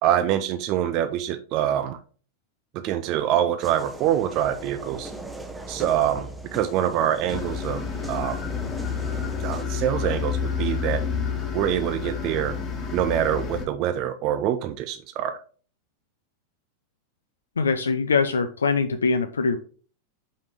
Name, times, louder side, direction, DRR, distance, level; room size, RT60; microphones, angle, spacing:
voice 1, 0.0-2.0 2.7-5.1 5.7-8.4 9.4-11.0 11.5-12.6 12.9-15.4, right 11 dB, 40° right, 10 dB, 0.5 m, -25 dB
sound 1, 3.6-9.6, right 1 dB, 5° right, 0.9 m, -39 dB
sound 2, 7.3-13.7, left 6 dB, 25° left, 1.4 m, -29 dB
voice 2, 17.6-19.6, left 4 dB, 70° left, 8 dB, 0.5 m, -23 dB
5.6 x 5.1 x 4.8 m, 0.41 s
figure-of-eight pair, 90°, 0 cm